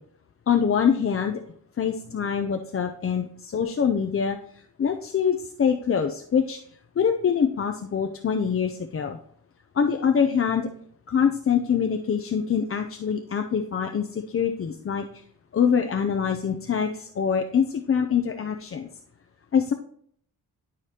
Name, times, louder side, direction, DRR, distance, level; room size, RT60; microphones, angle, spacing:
voice 1, 0.5-1.4 1.8-4.4 4.8-6.6 7.0-9.2 9.7-10.7 11.1-15.2 15.5-18.9 19.5-19.7, left 7 dB, 40° left, 6 dB, 0.4 m, -24 dB
10.5 x 4.9 x 2.8 m, 0.62 s
wide cardioid pair, 140°, 38 cm